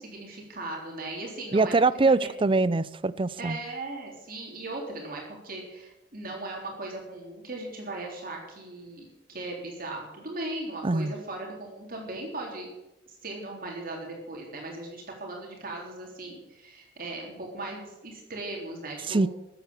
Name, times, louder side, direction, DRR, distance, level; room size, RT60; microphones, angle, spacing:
voice 1, 0.0-1.7 2.0-2.3 3.4-12.7 13.1-19.2, right 2 dB, 50° right, 3.6 m, -38 dB
voice 2, 1.5-3.6 10.8-11.1 19.1-19.3, right 3 dB, 30° right, 0.5 m, -23 dB
15.0 x 9.2 x 7.1 m
head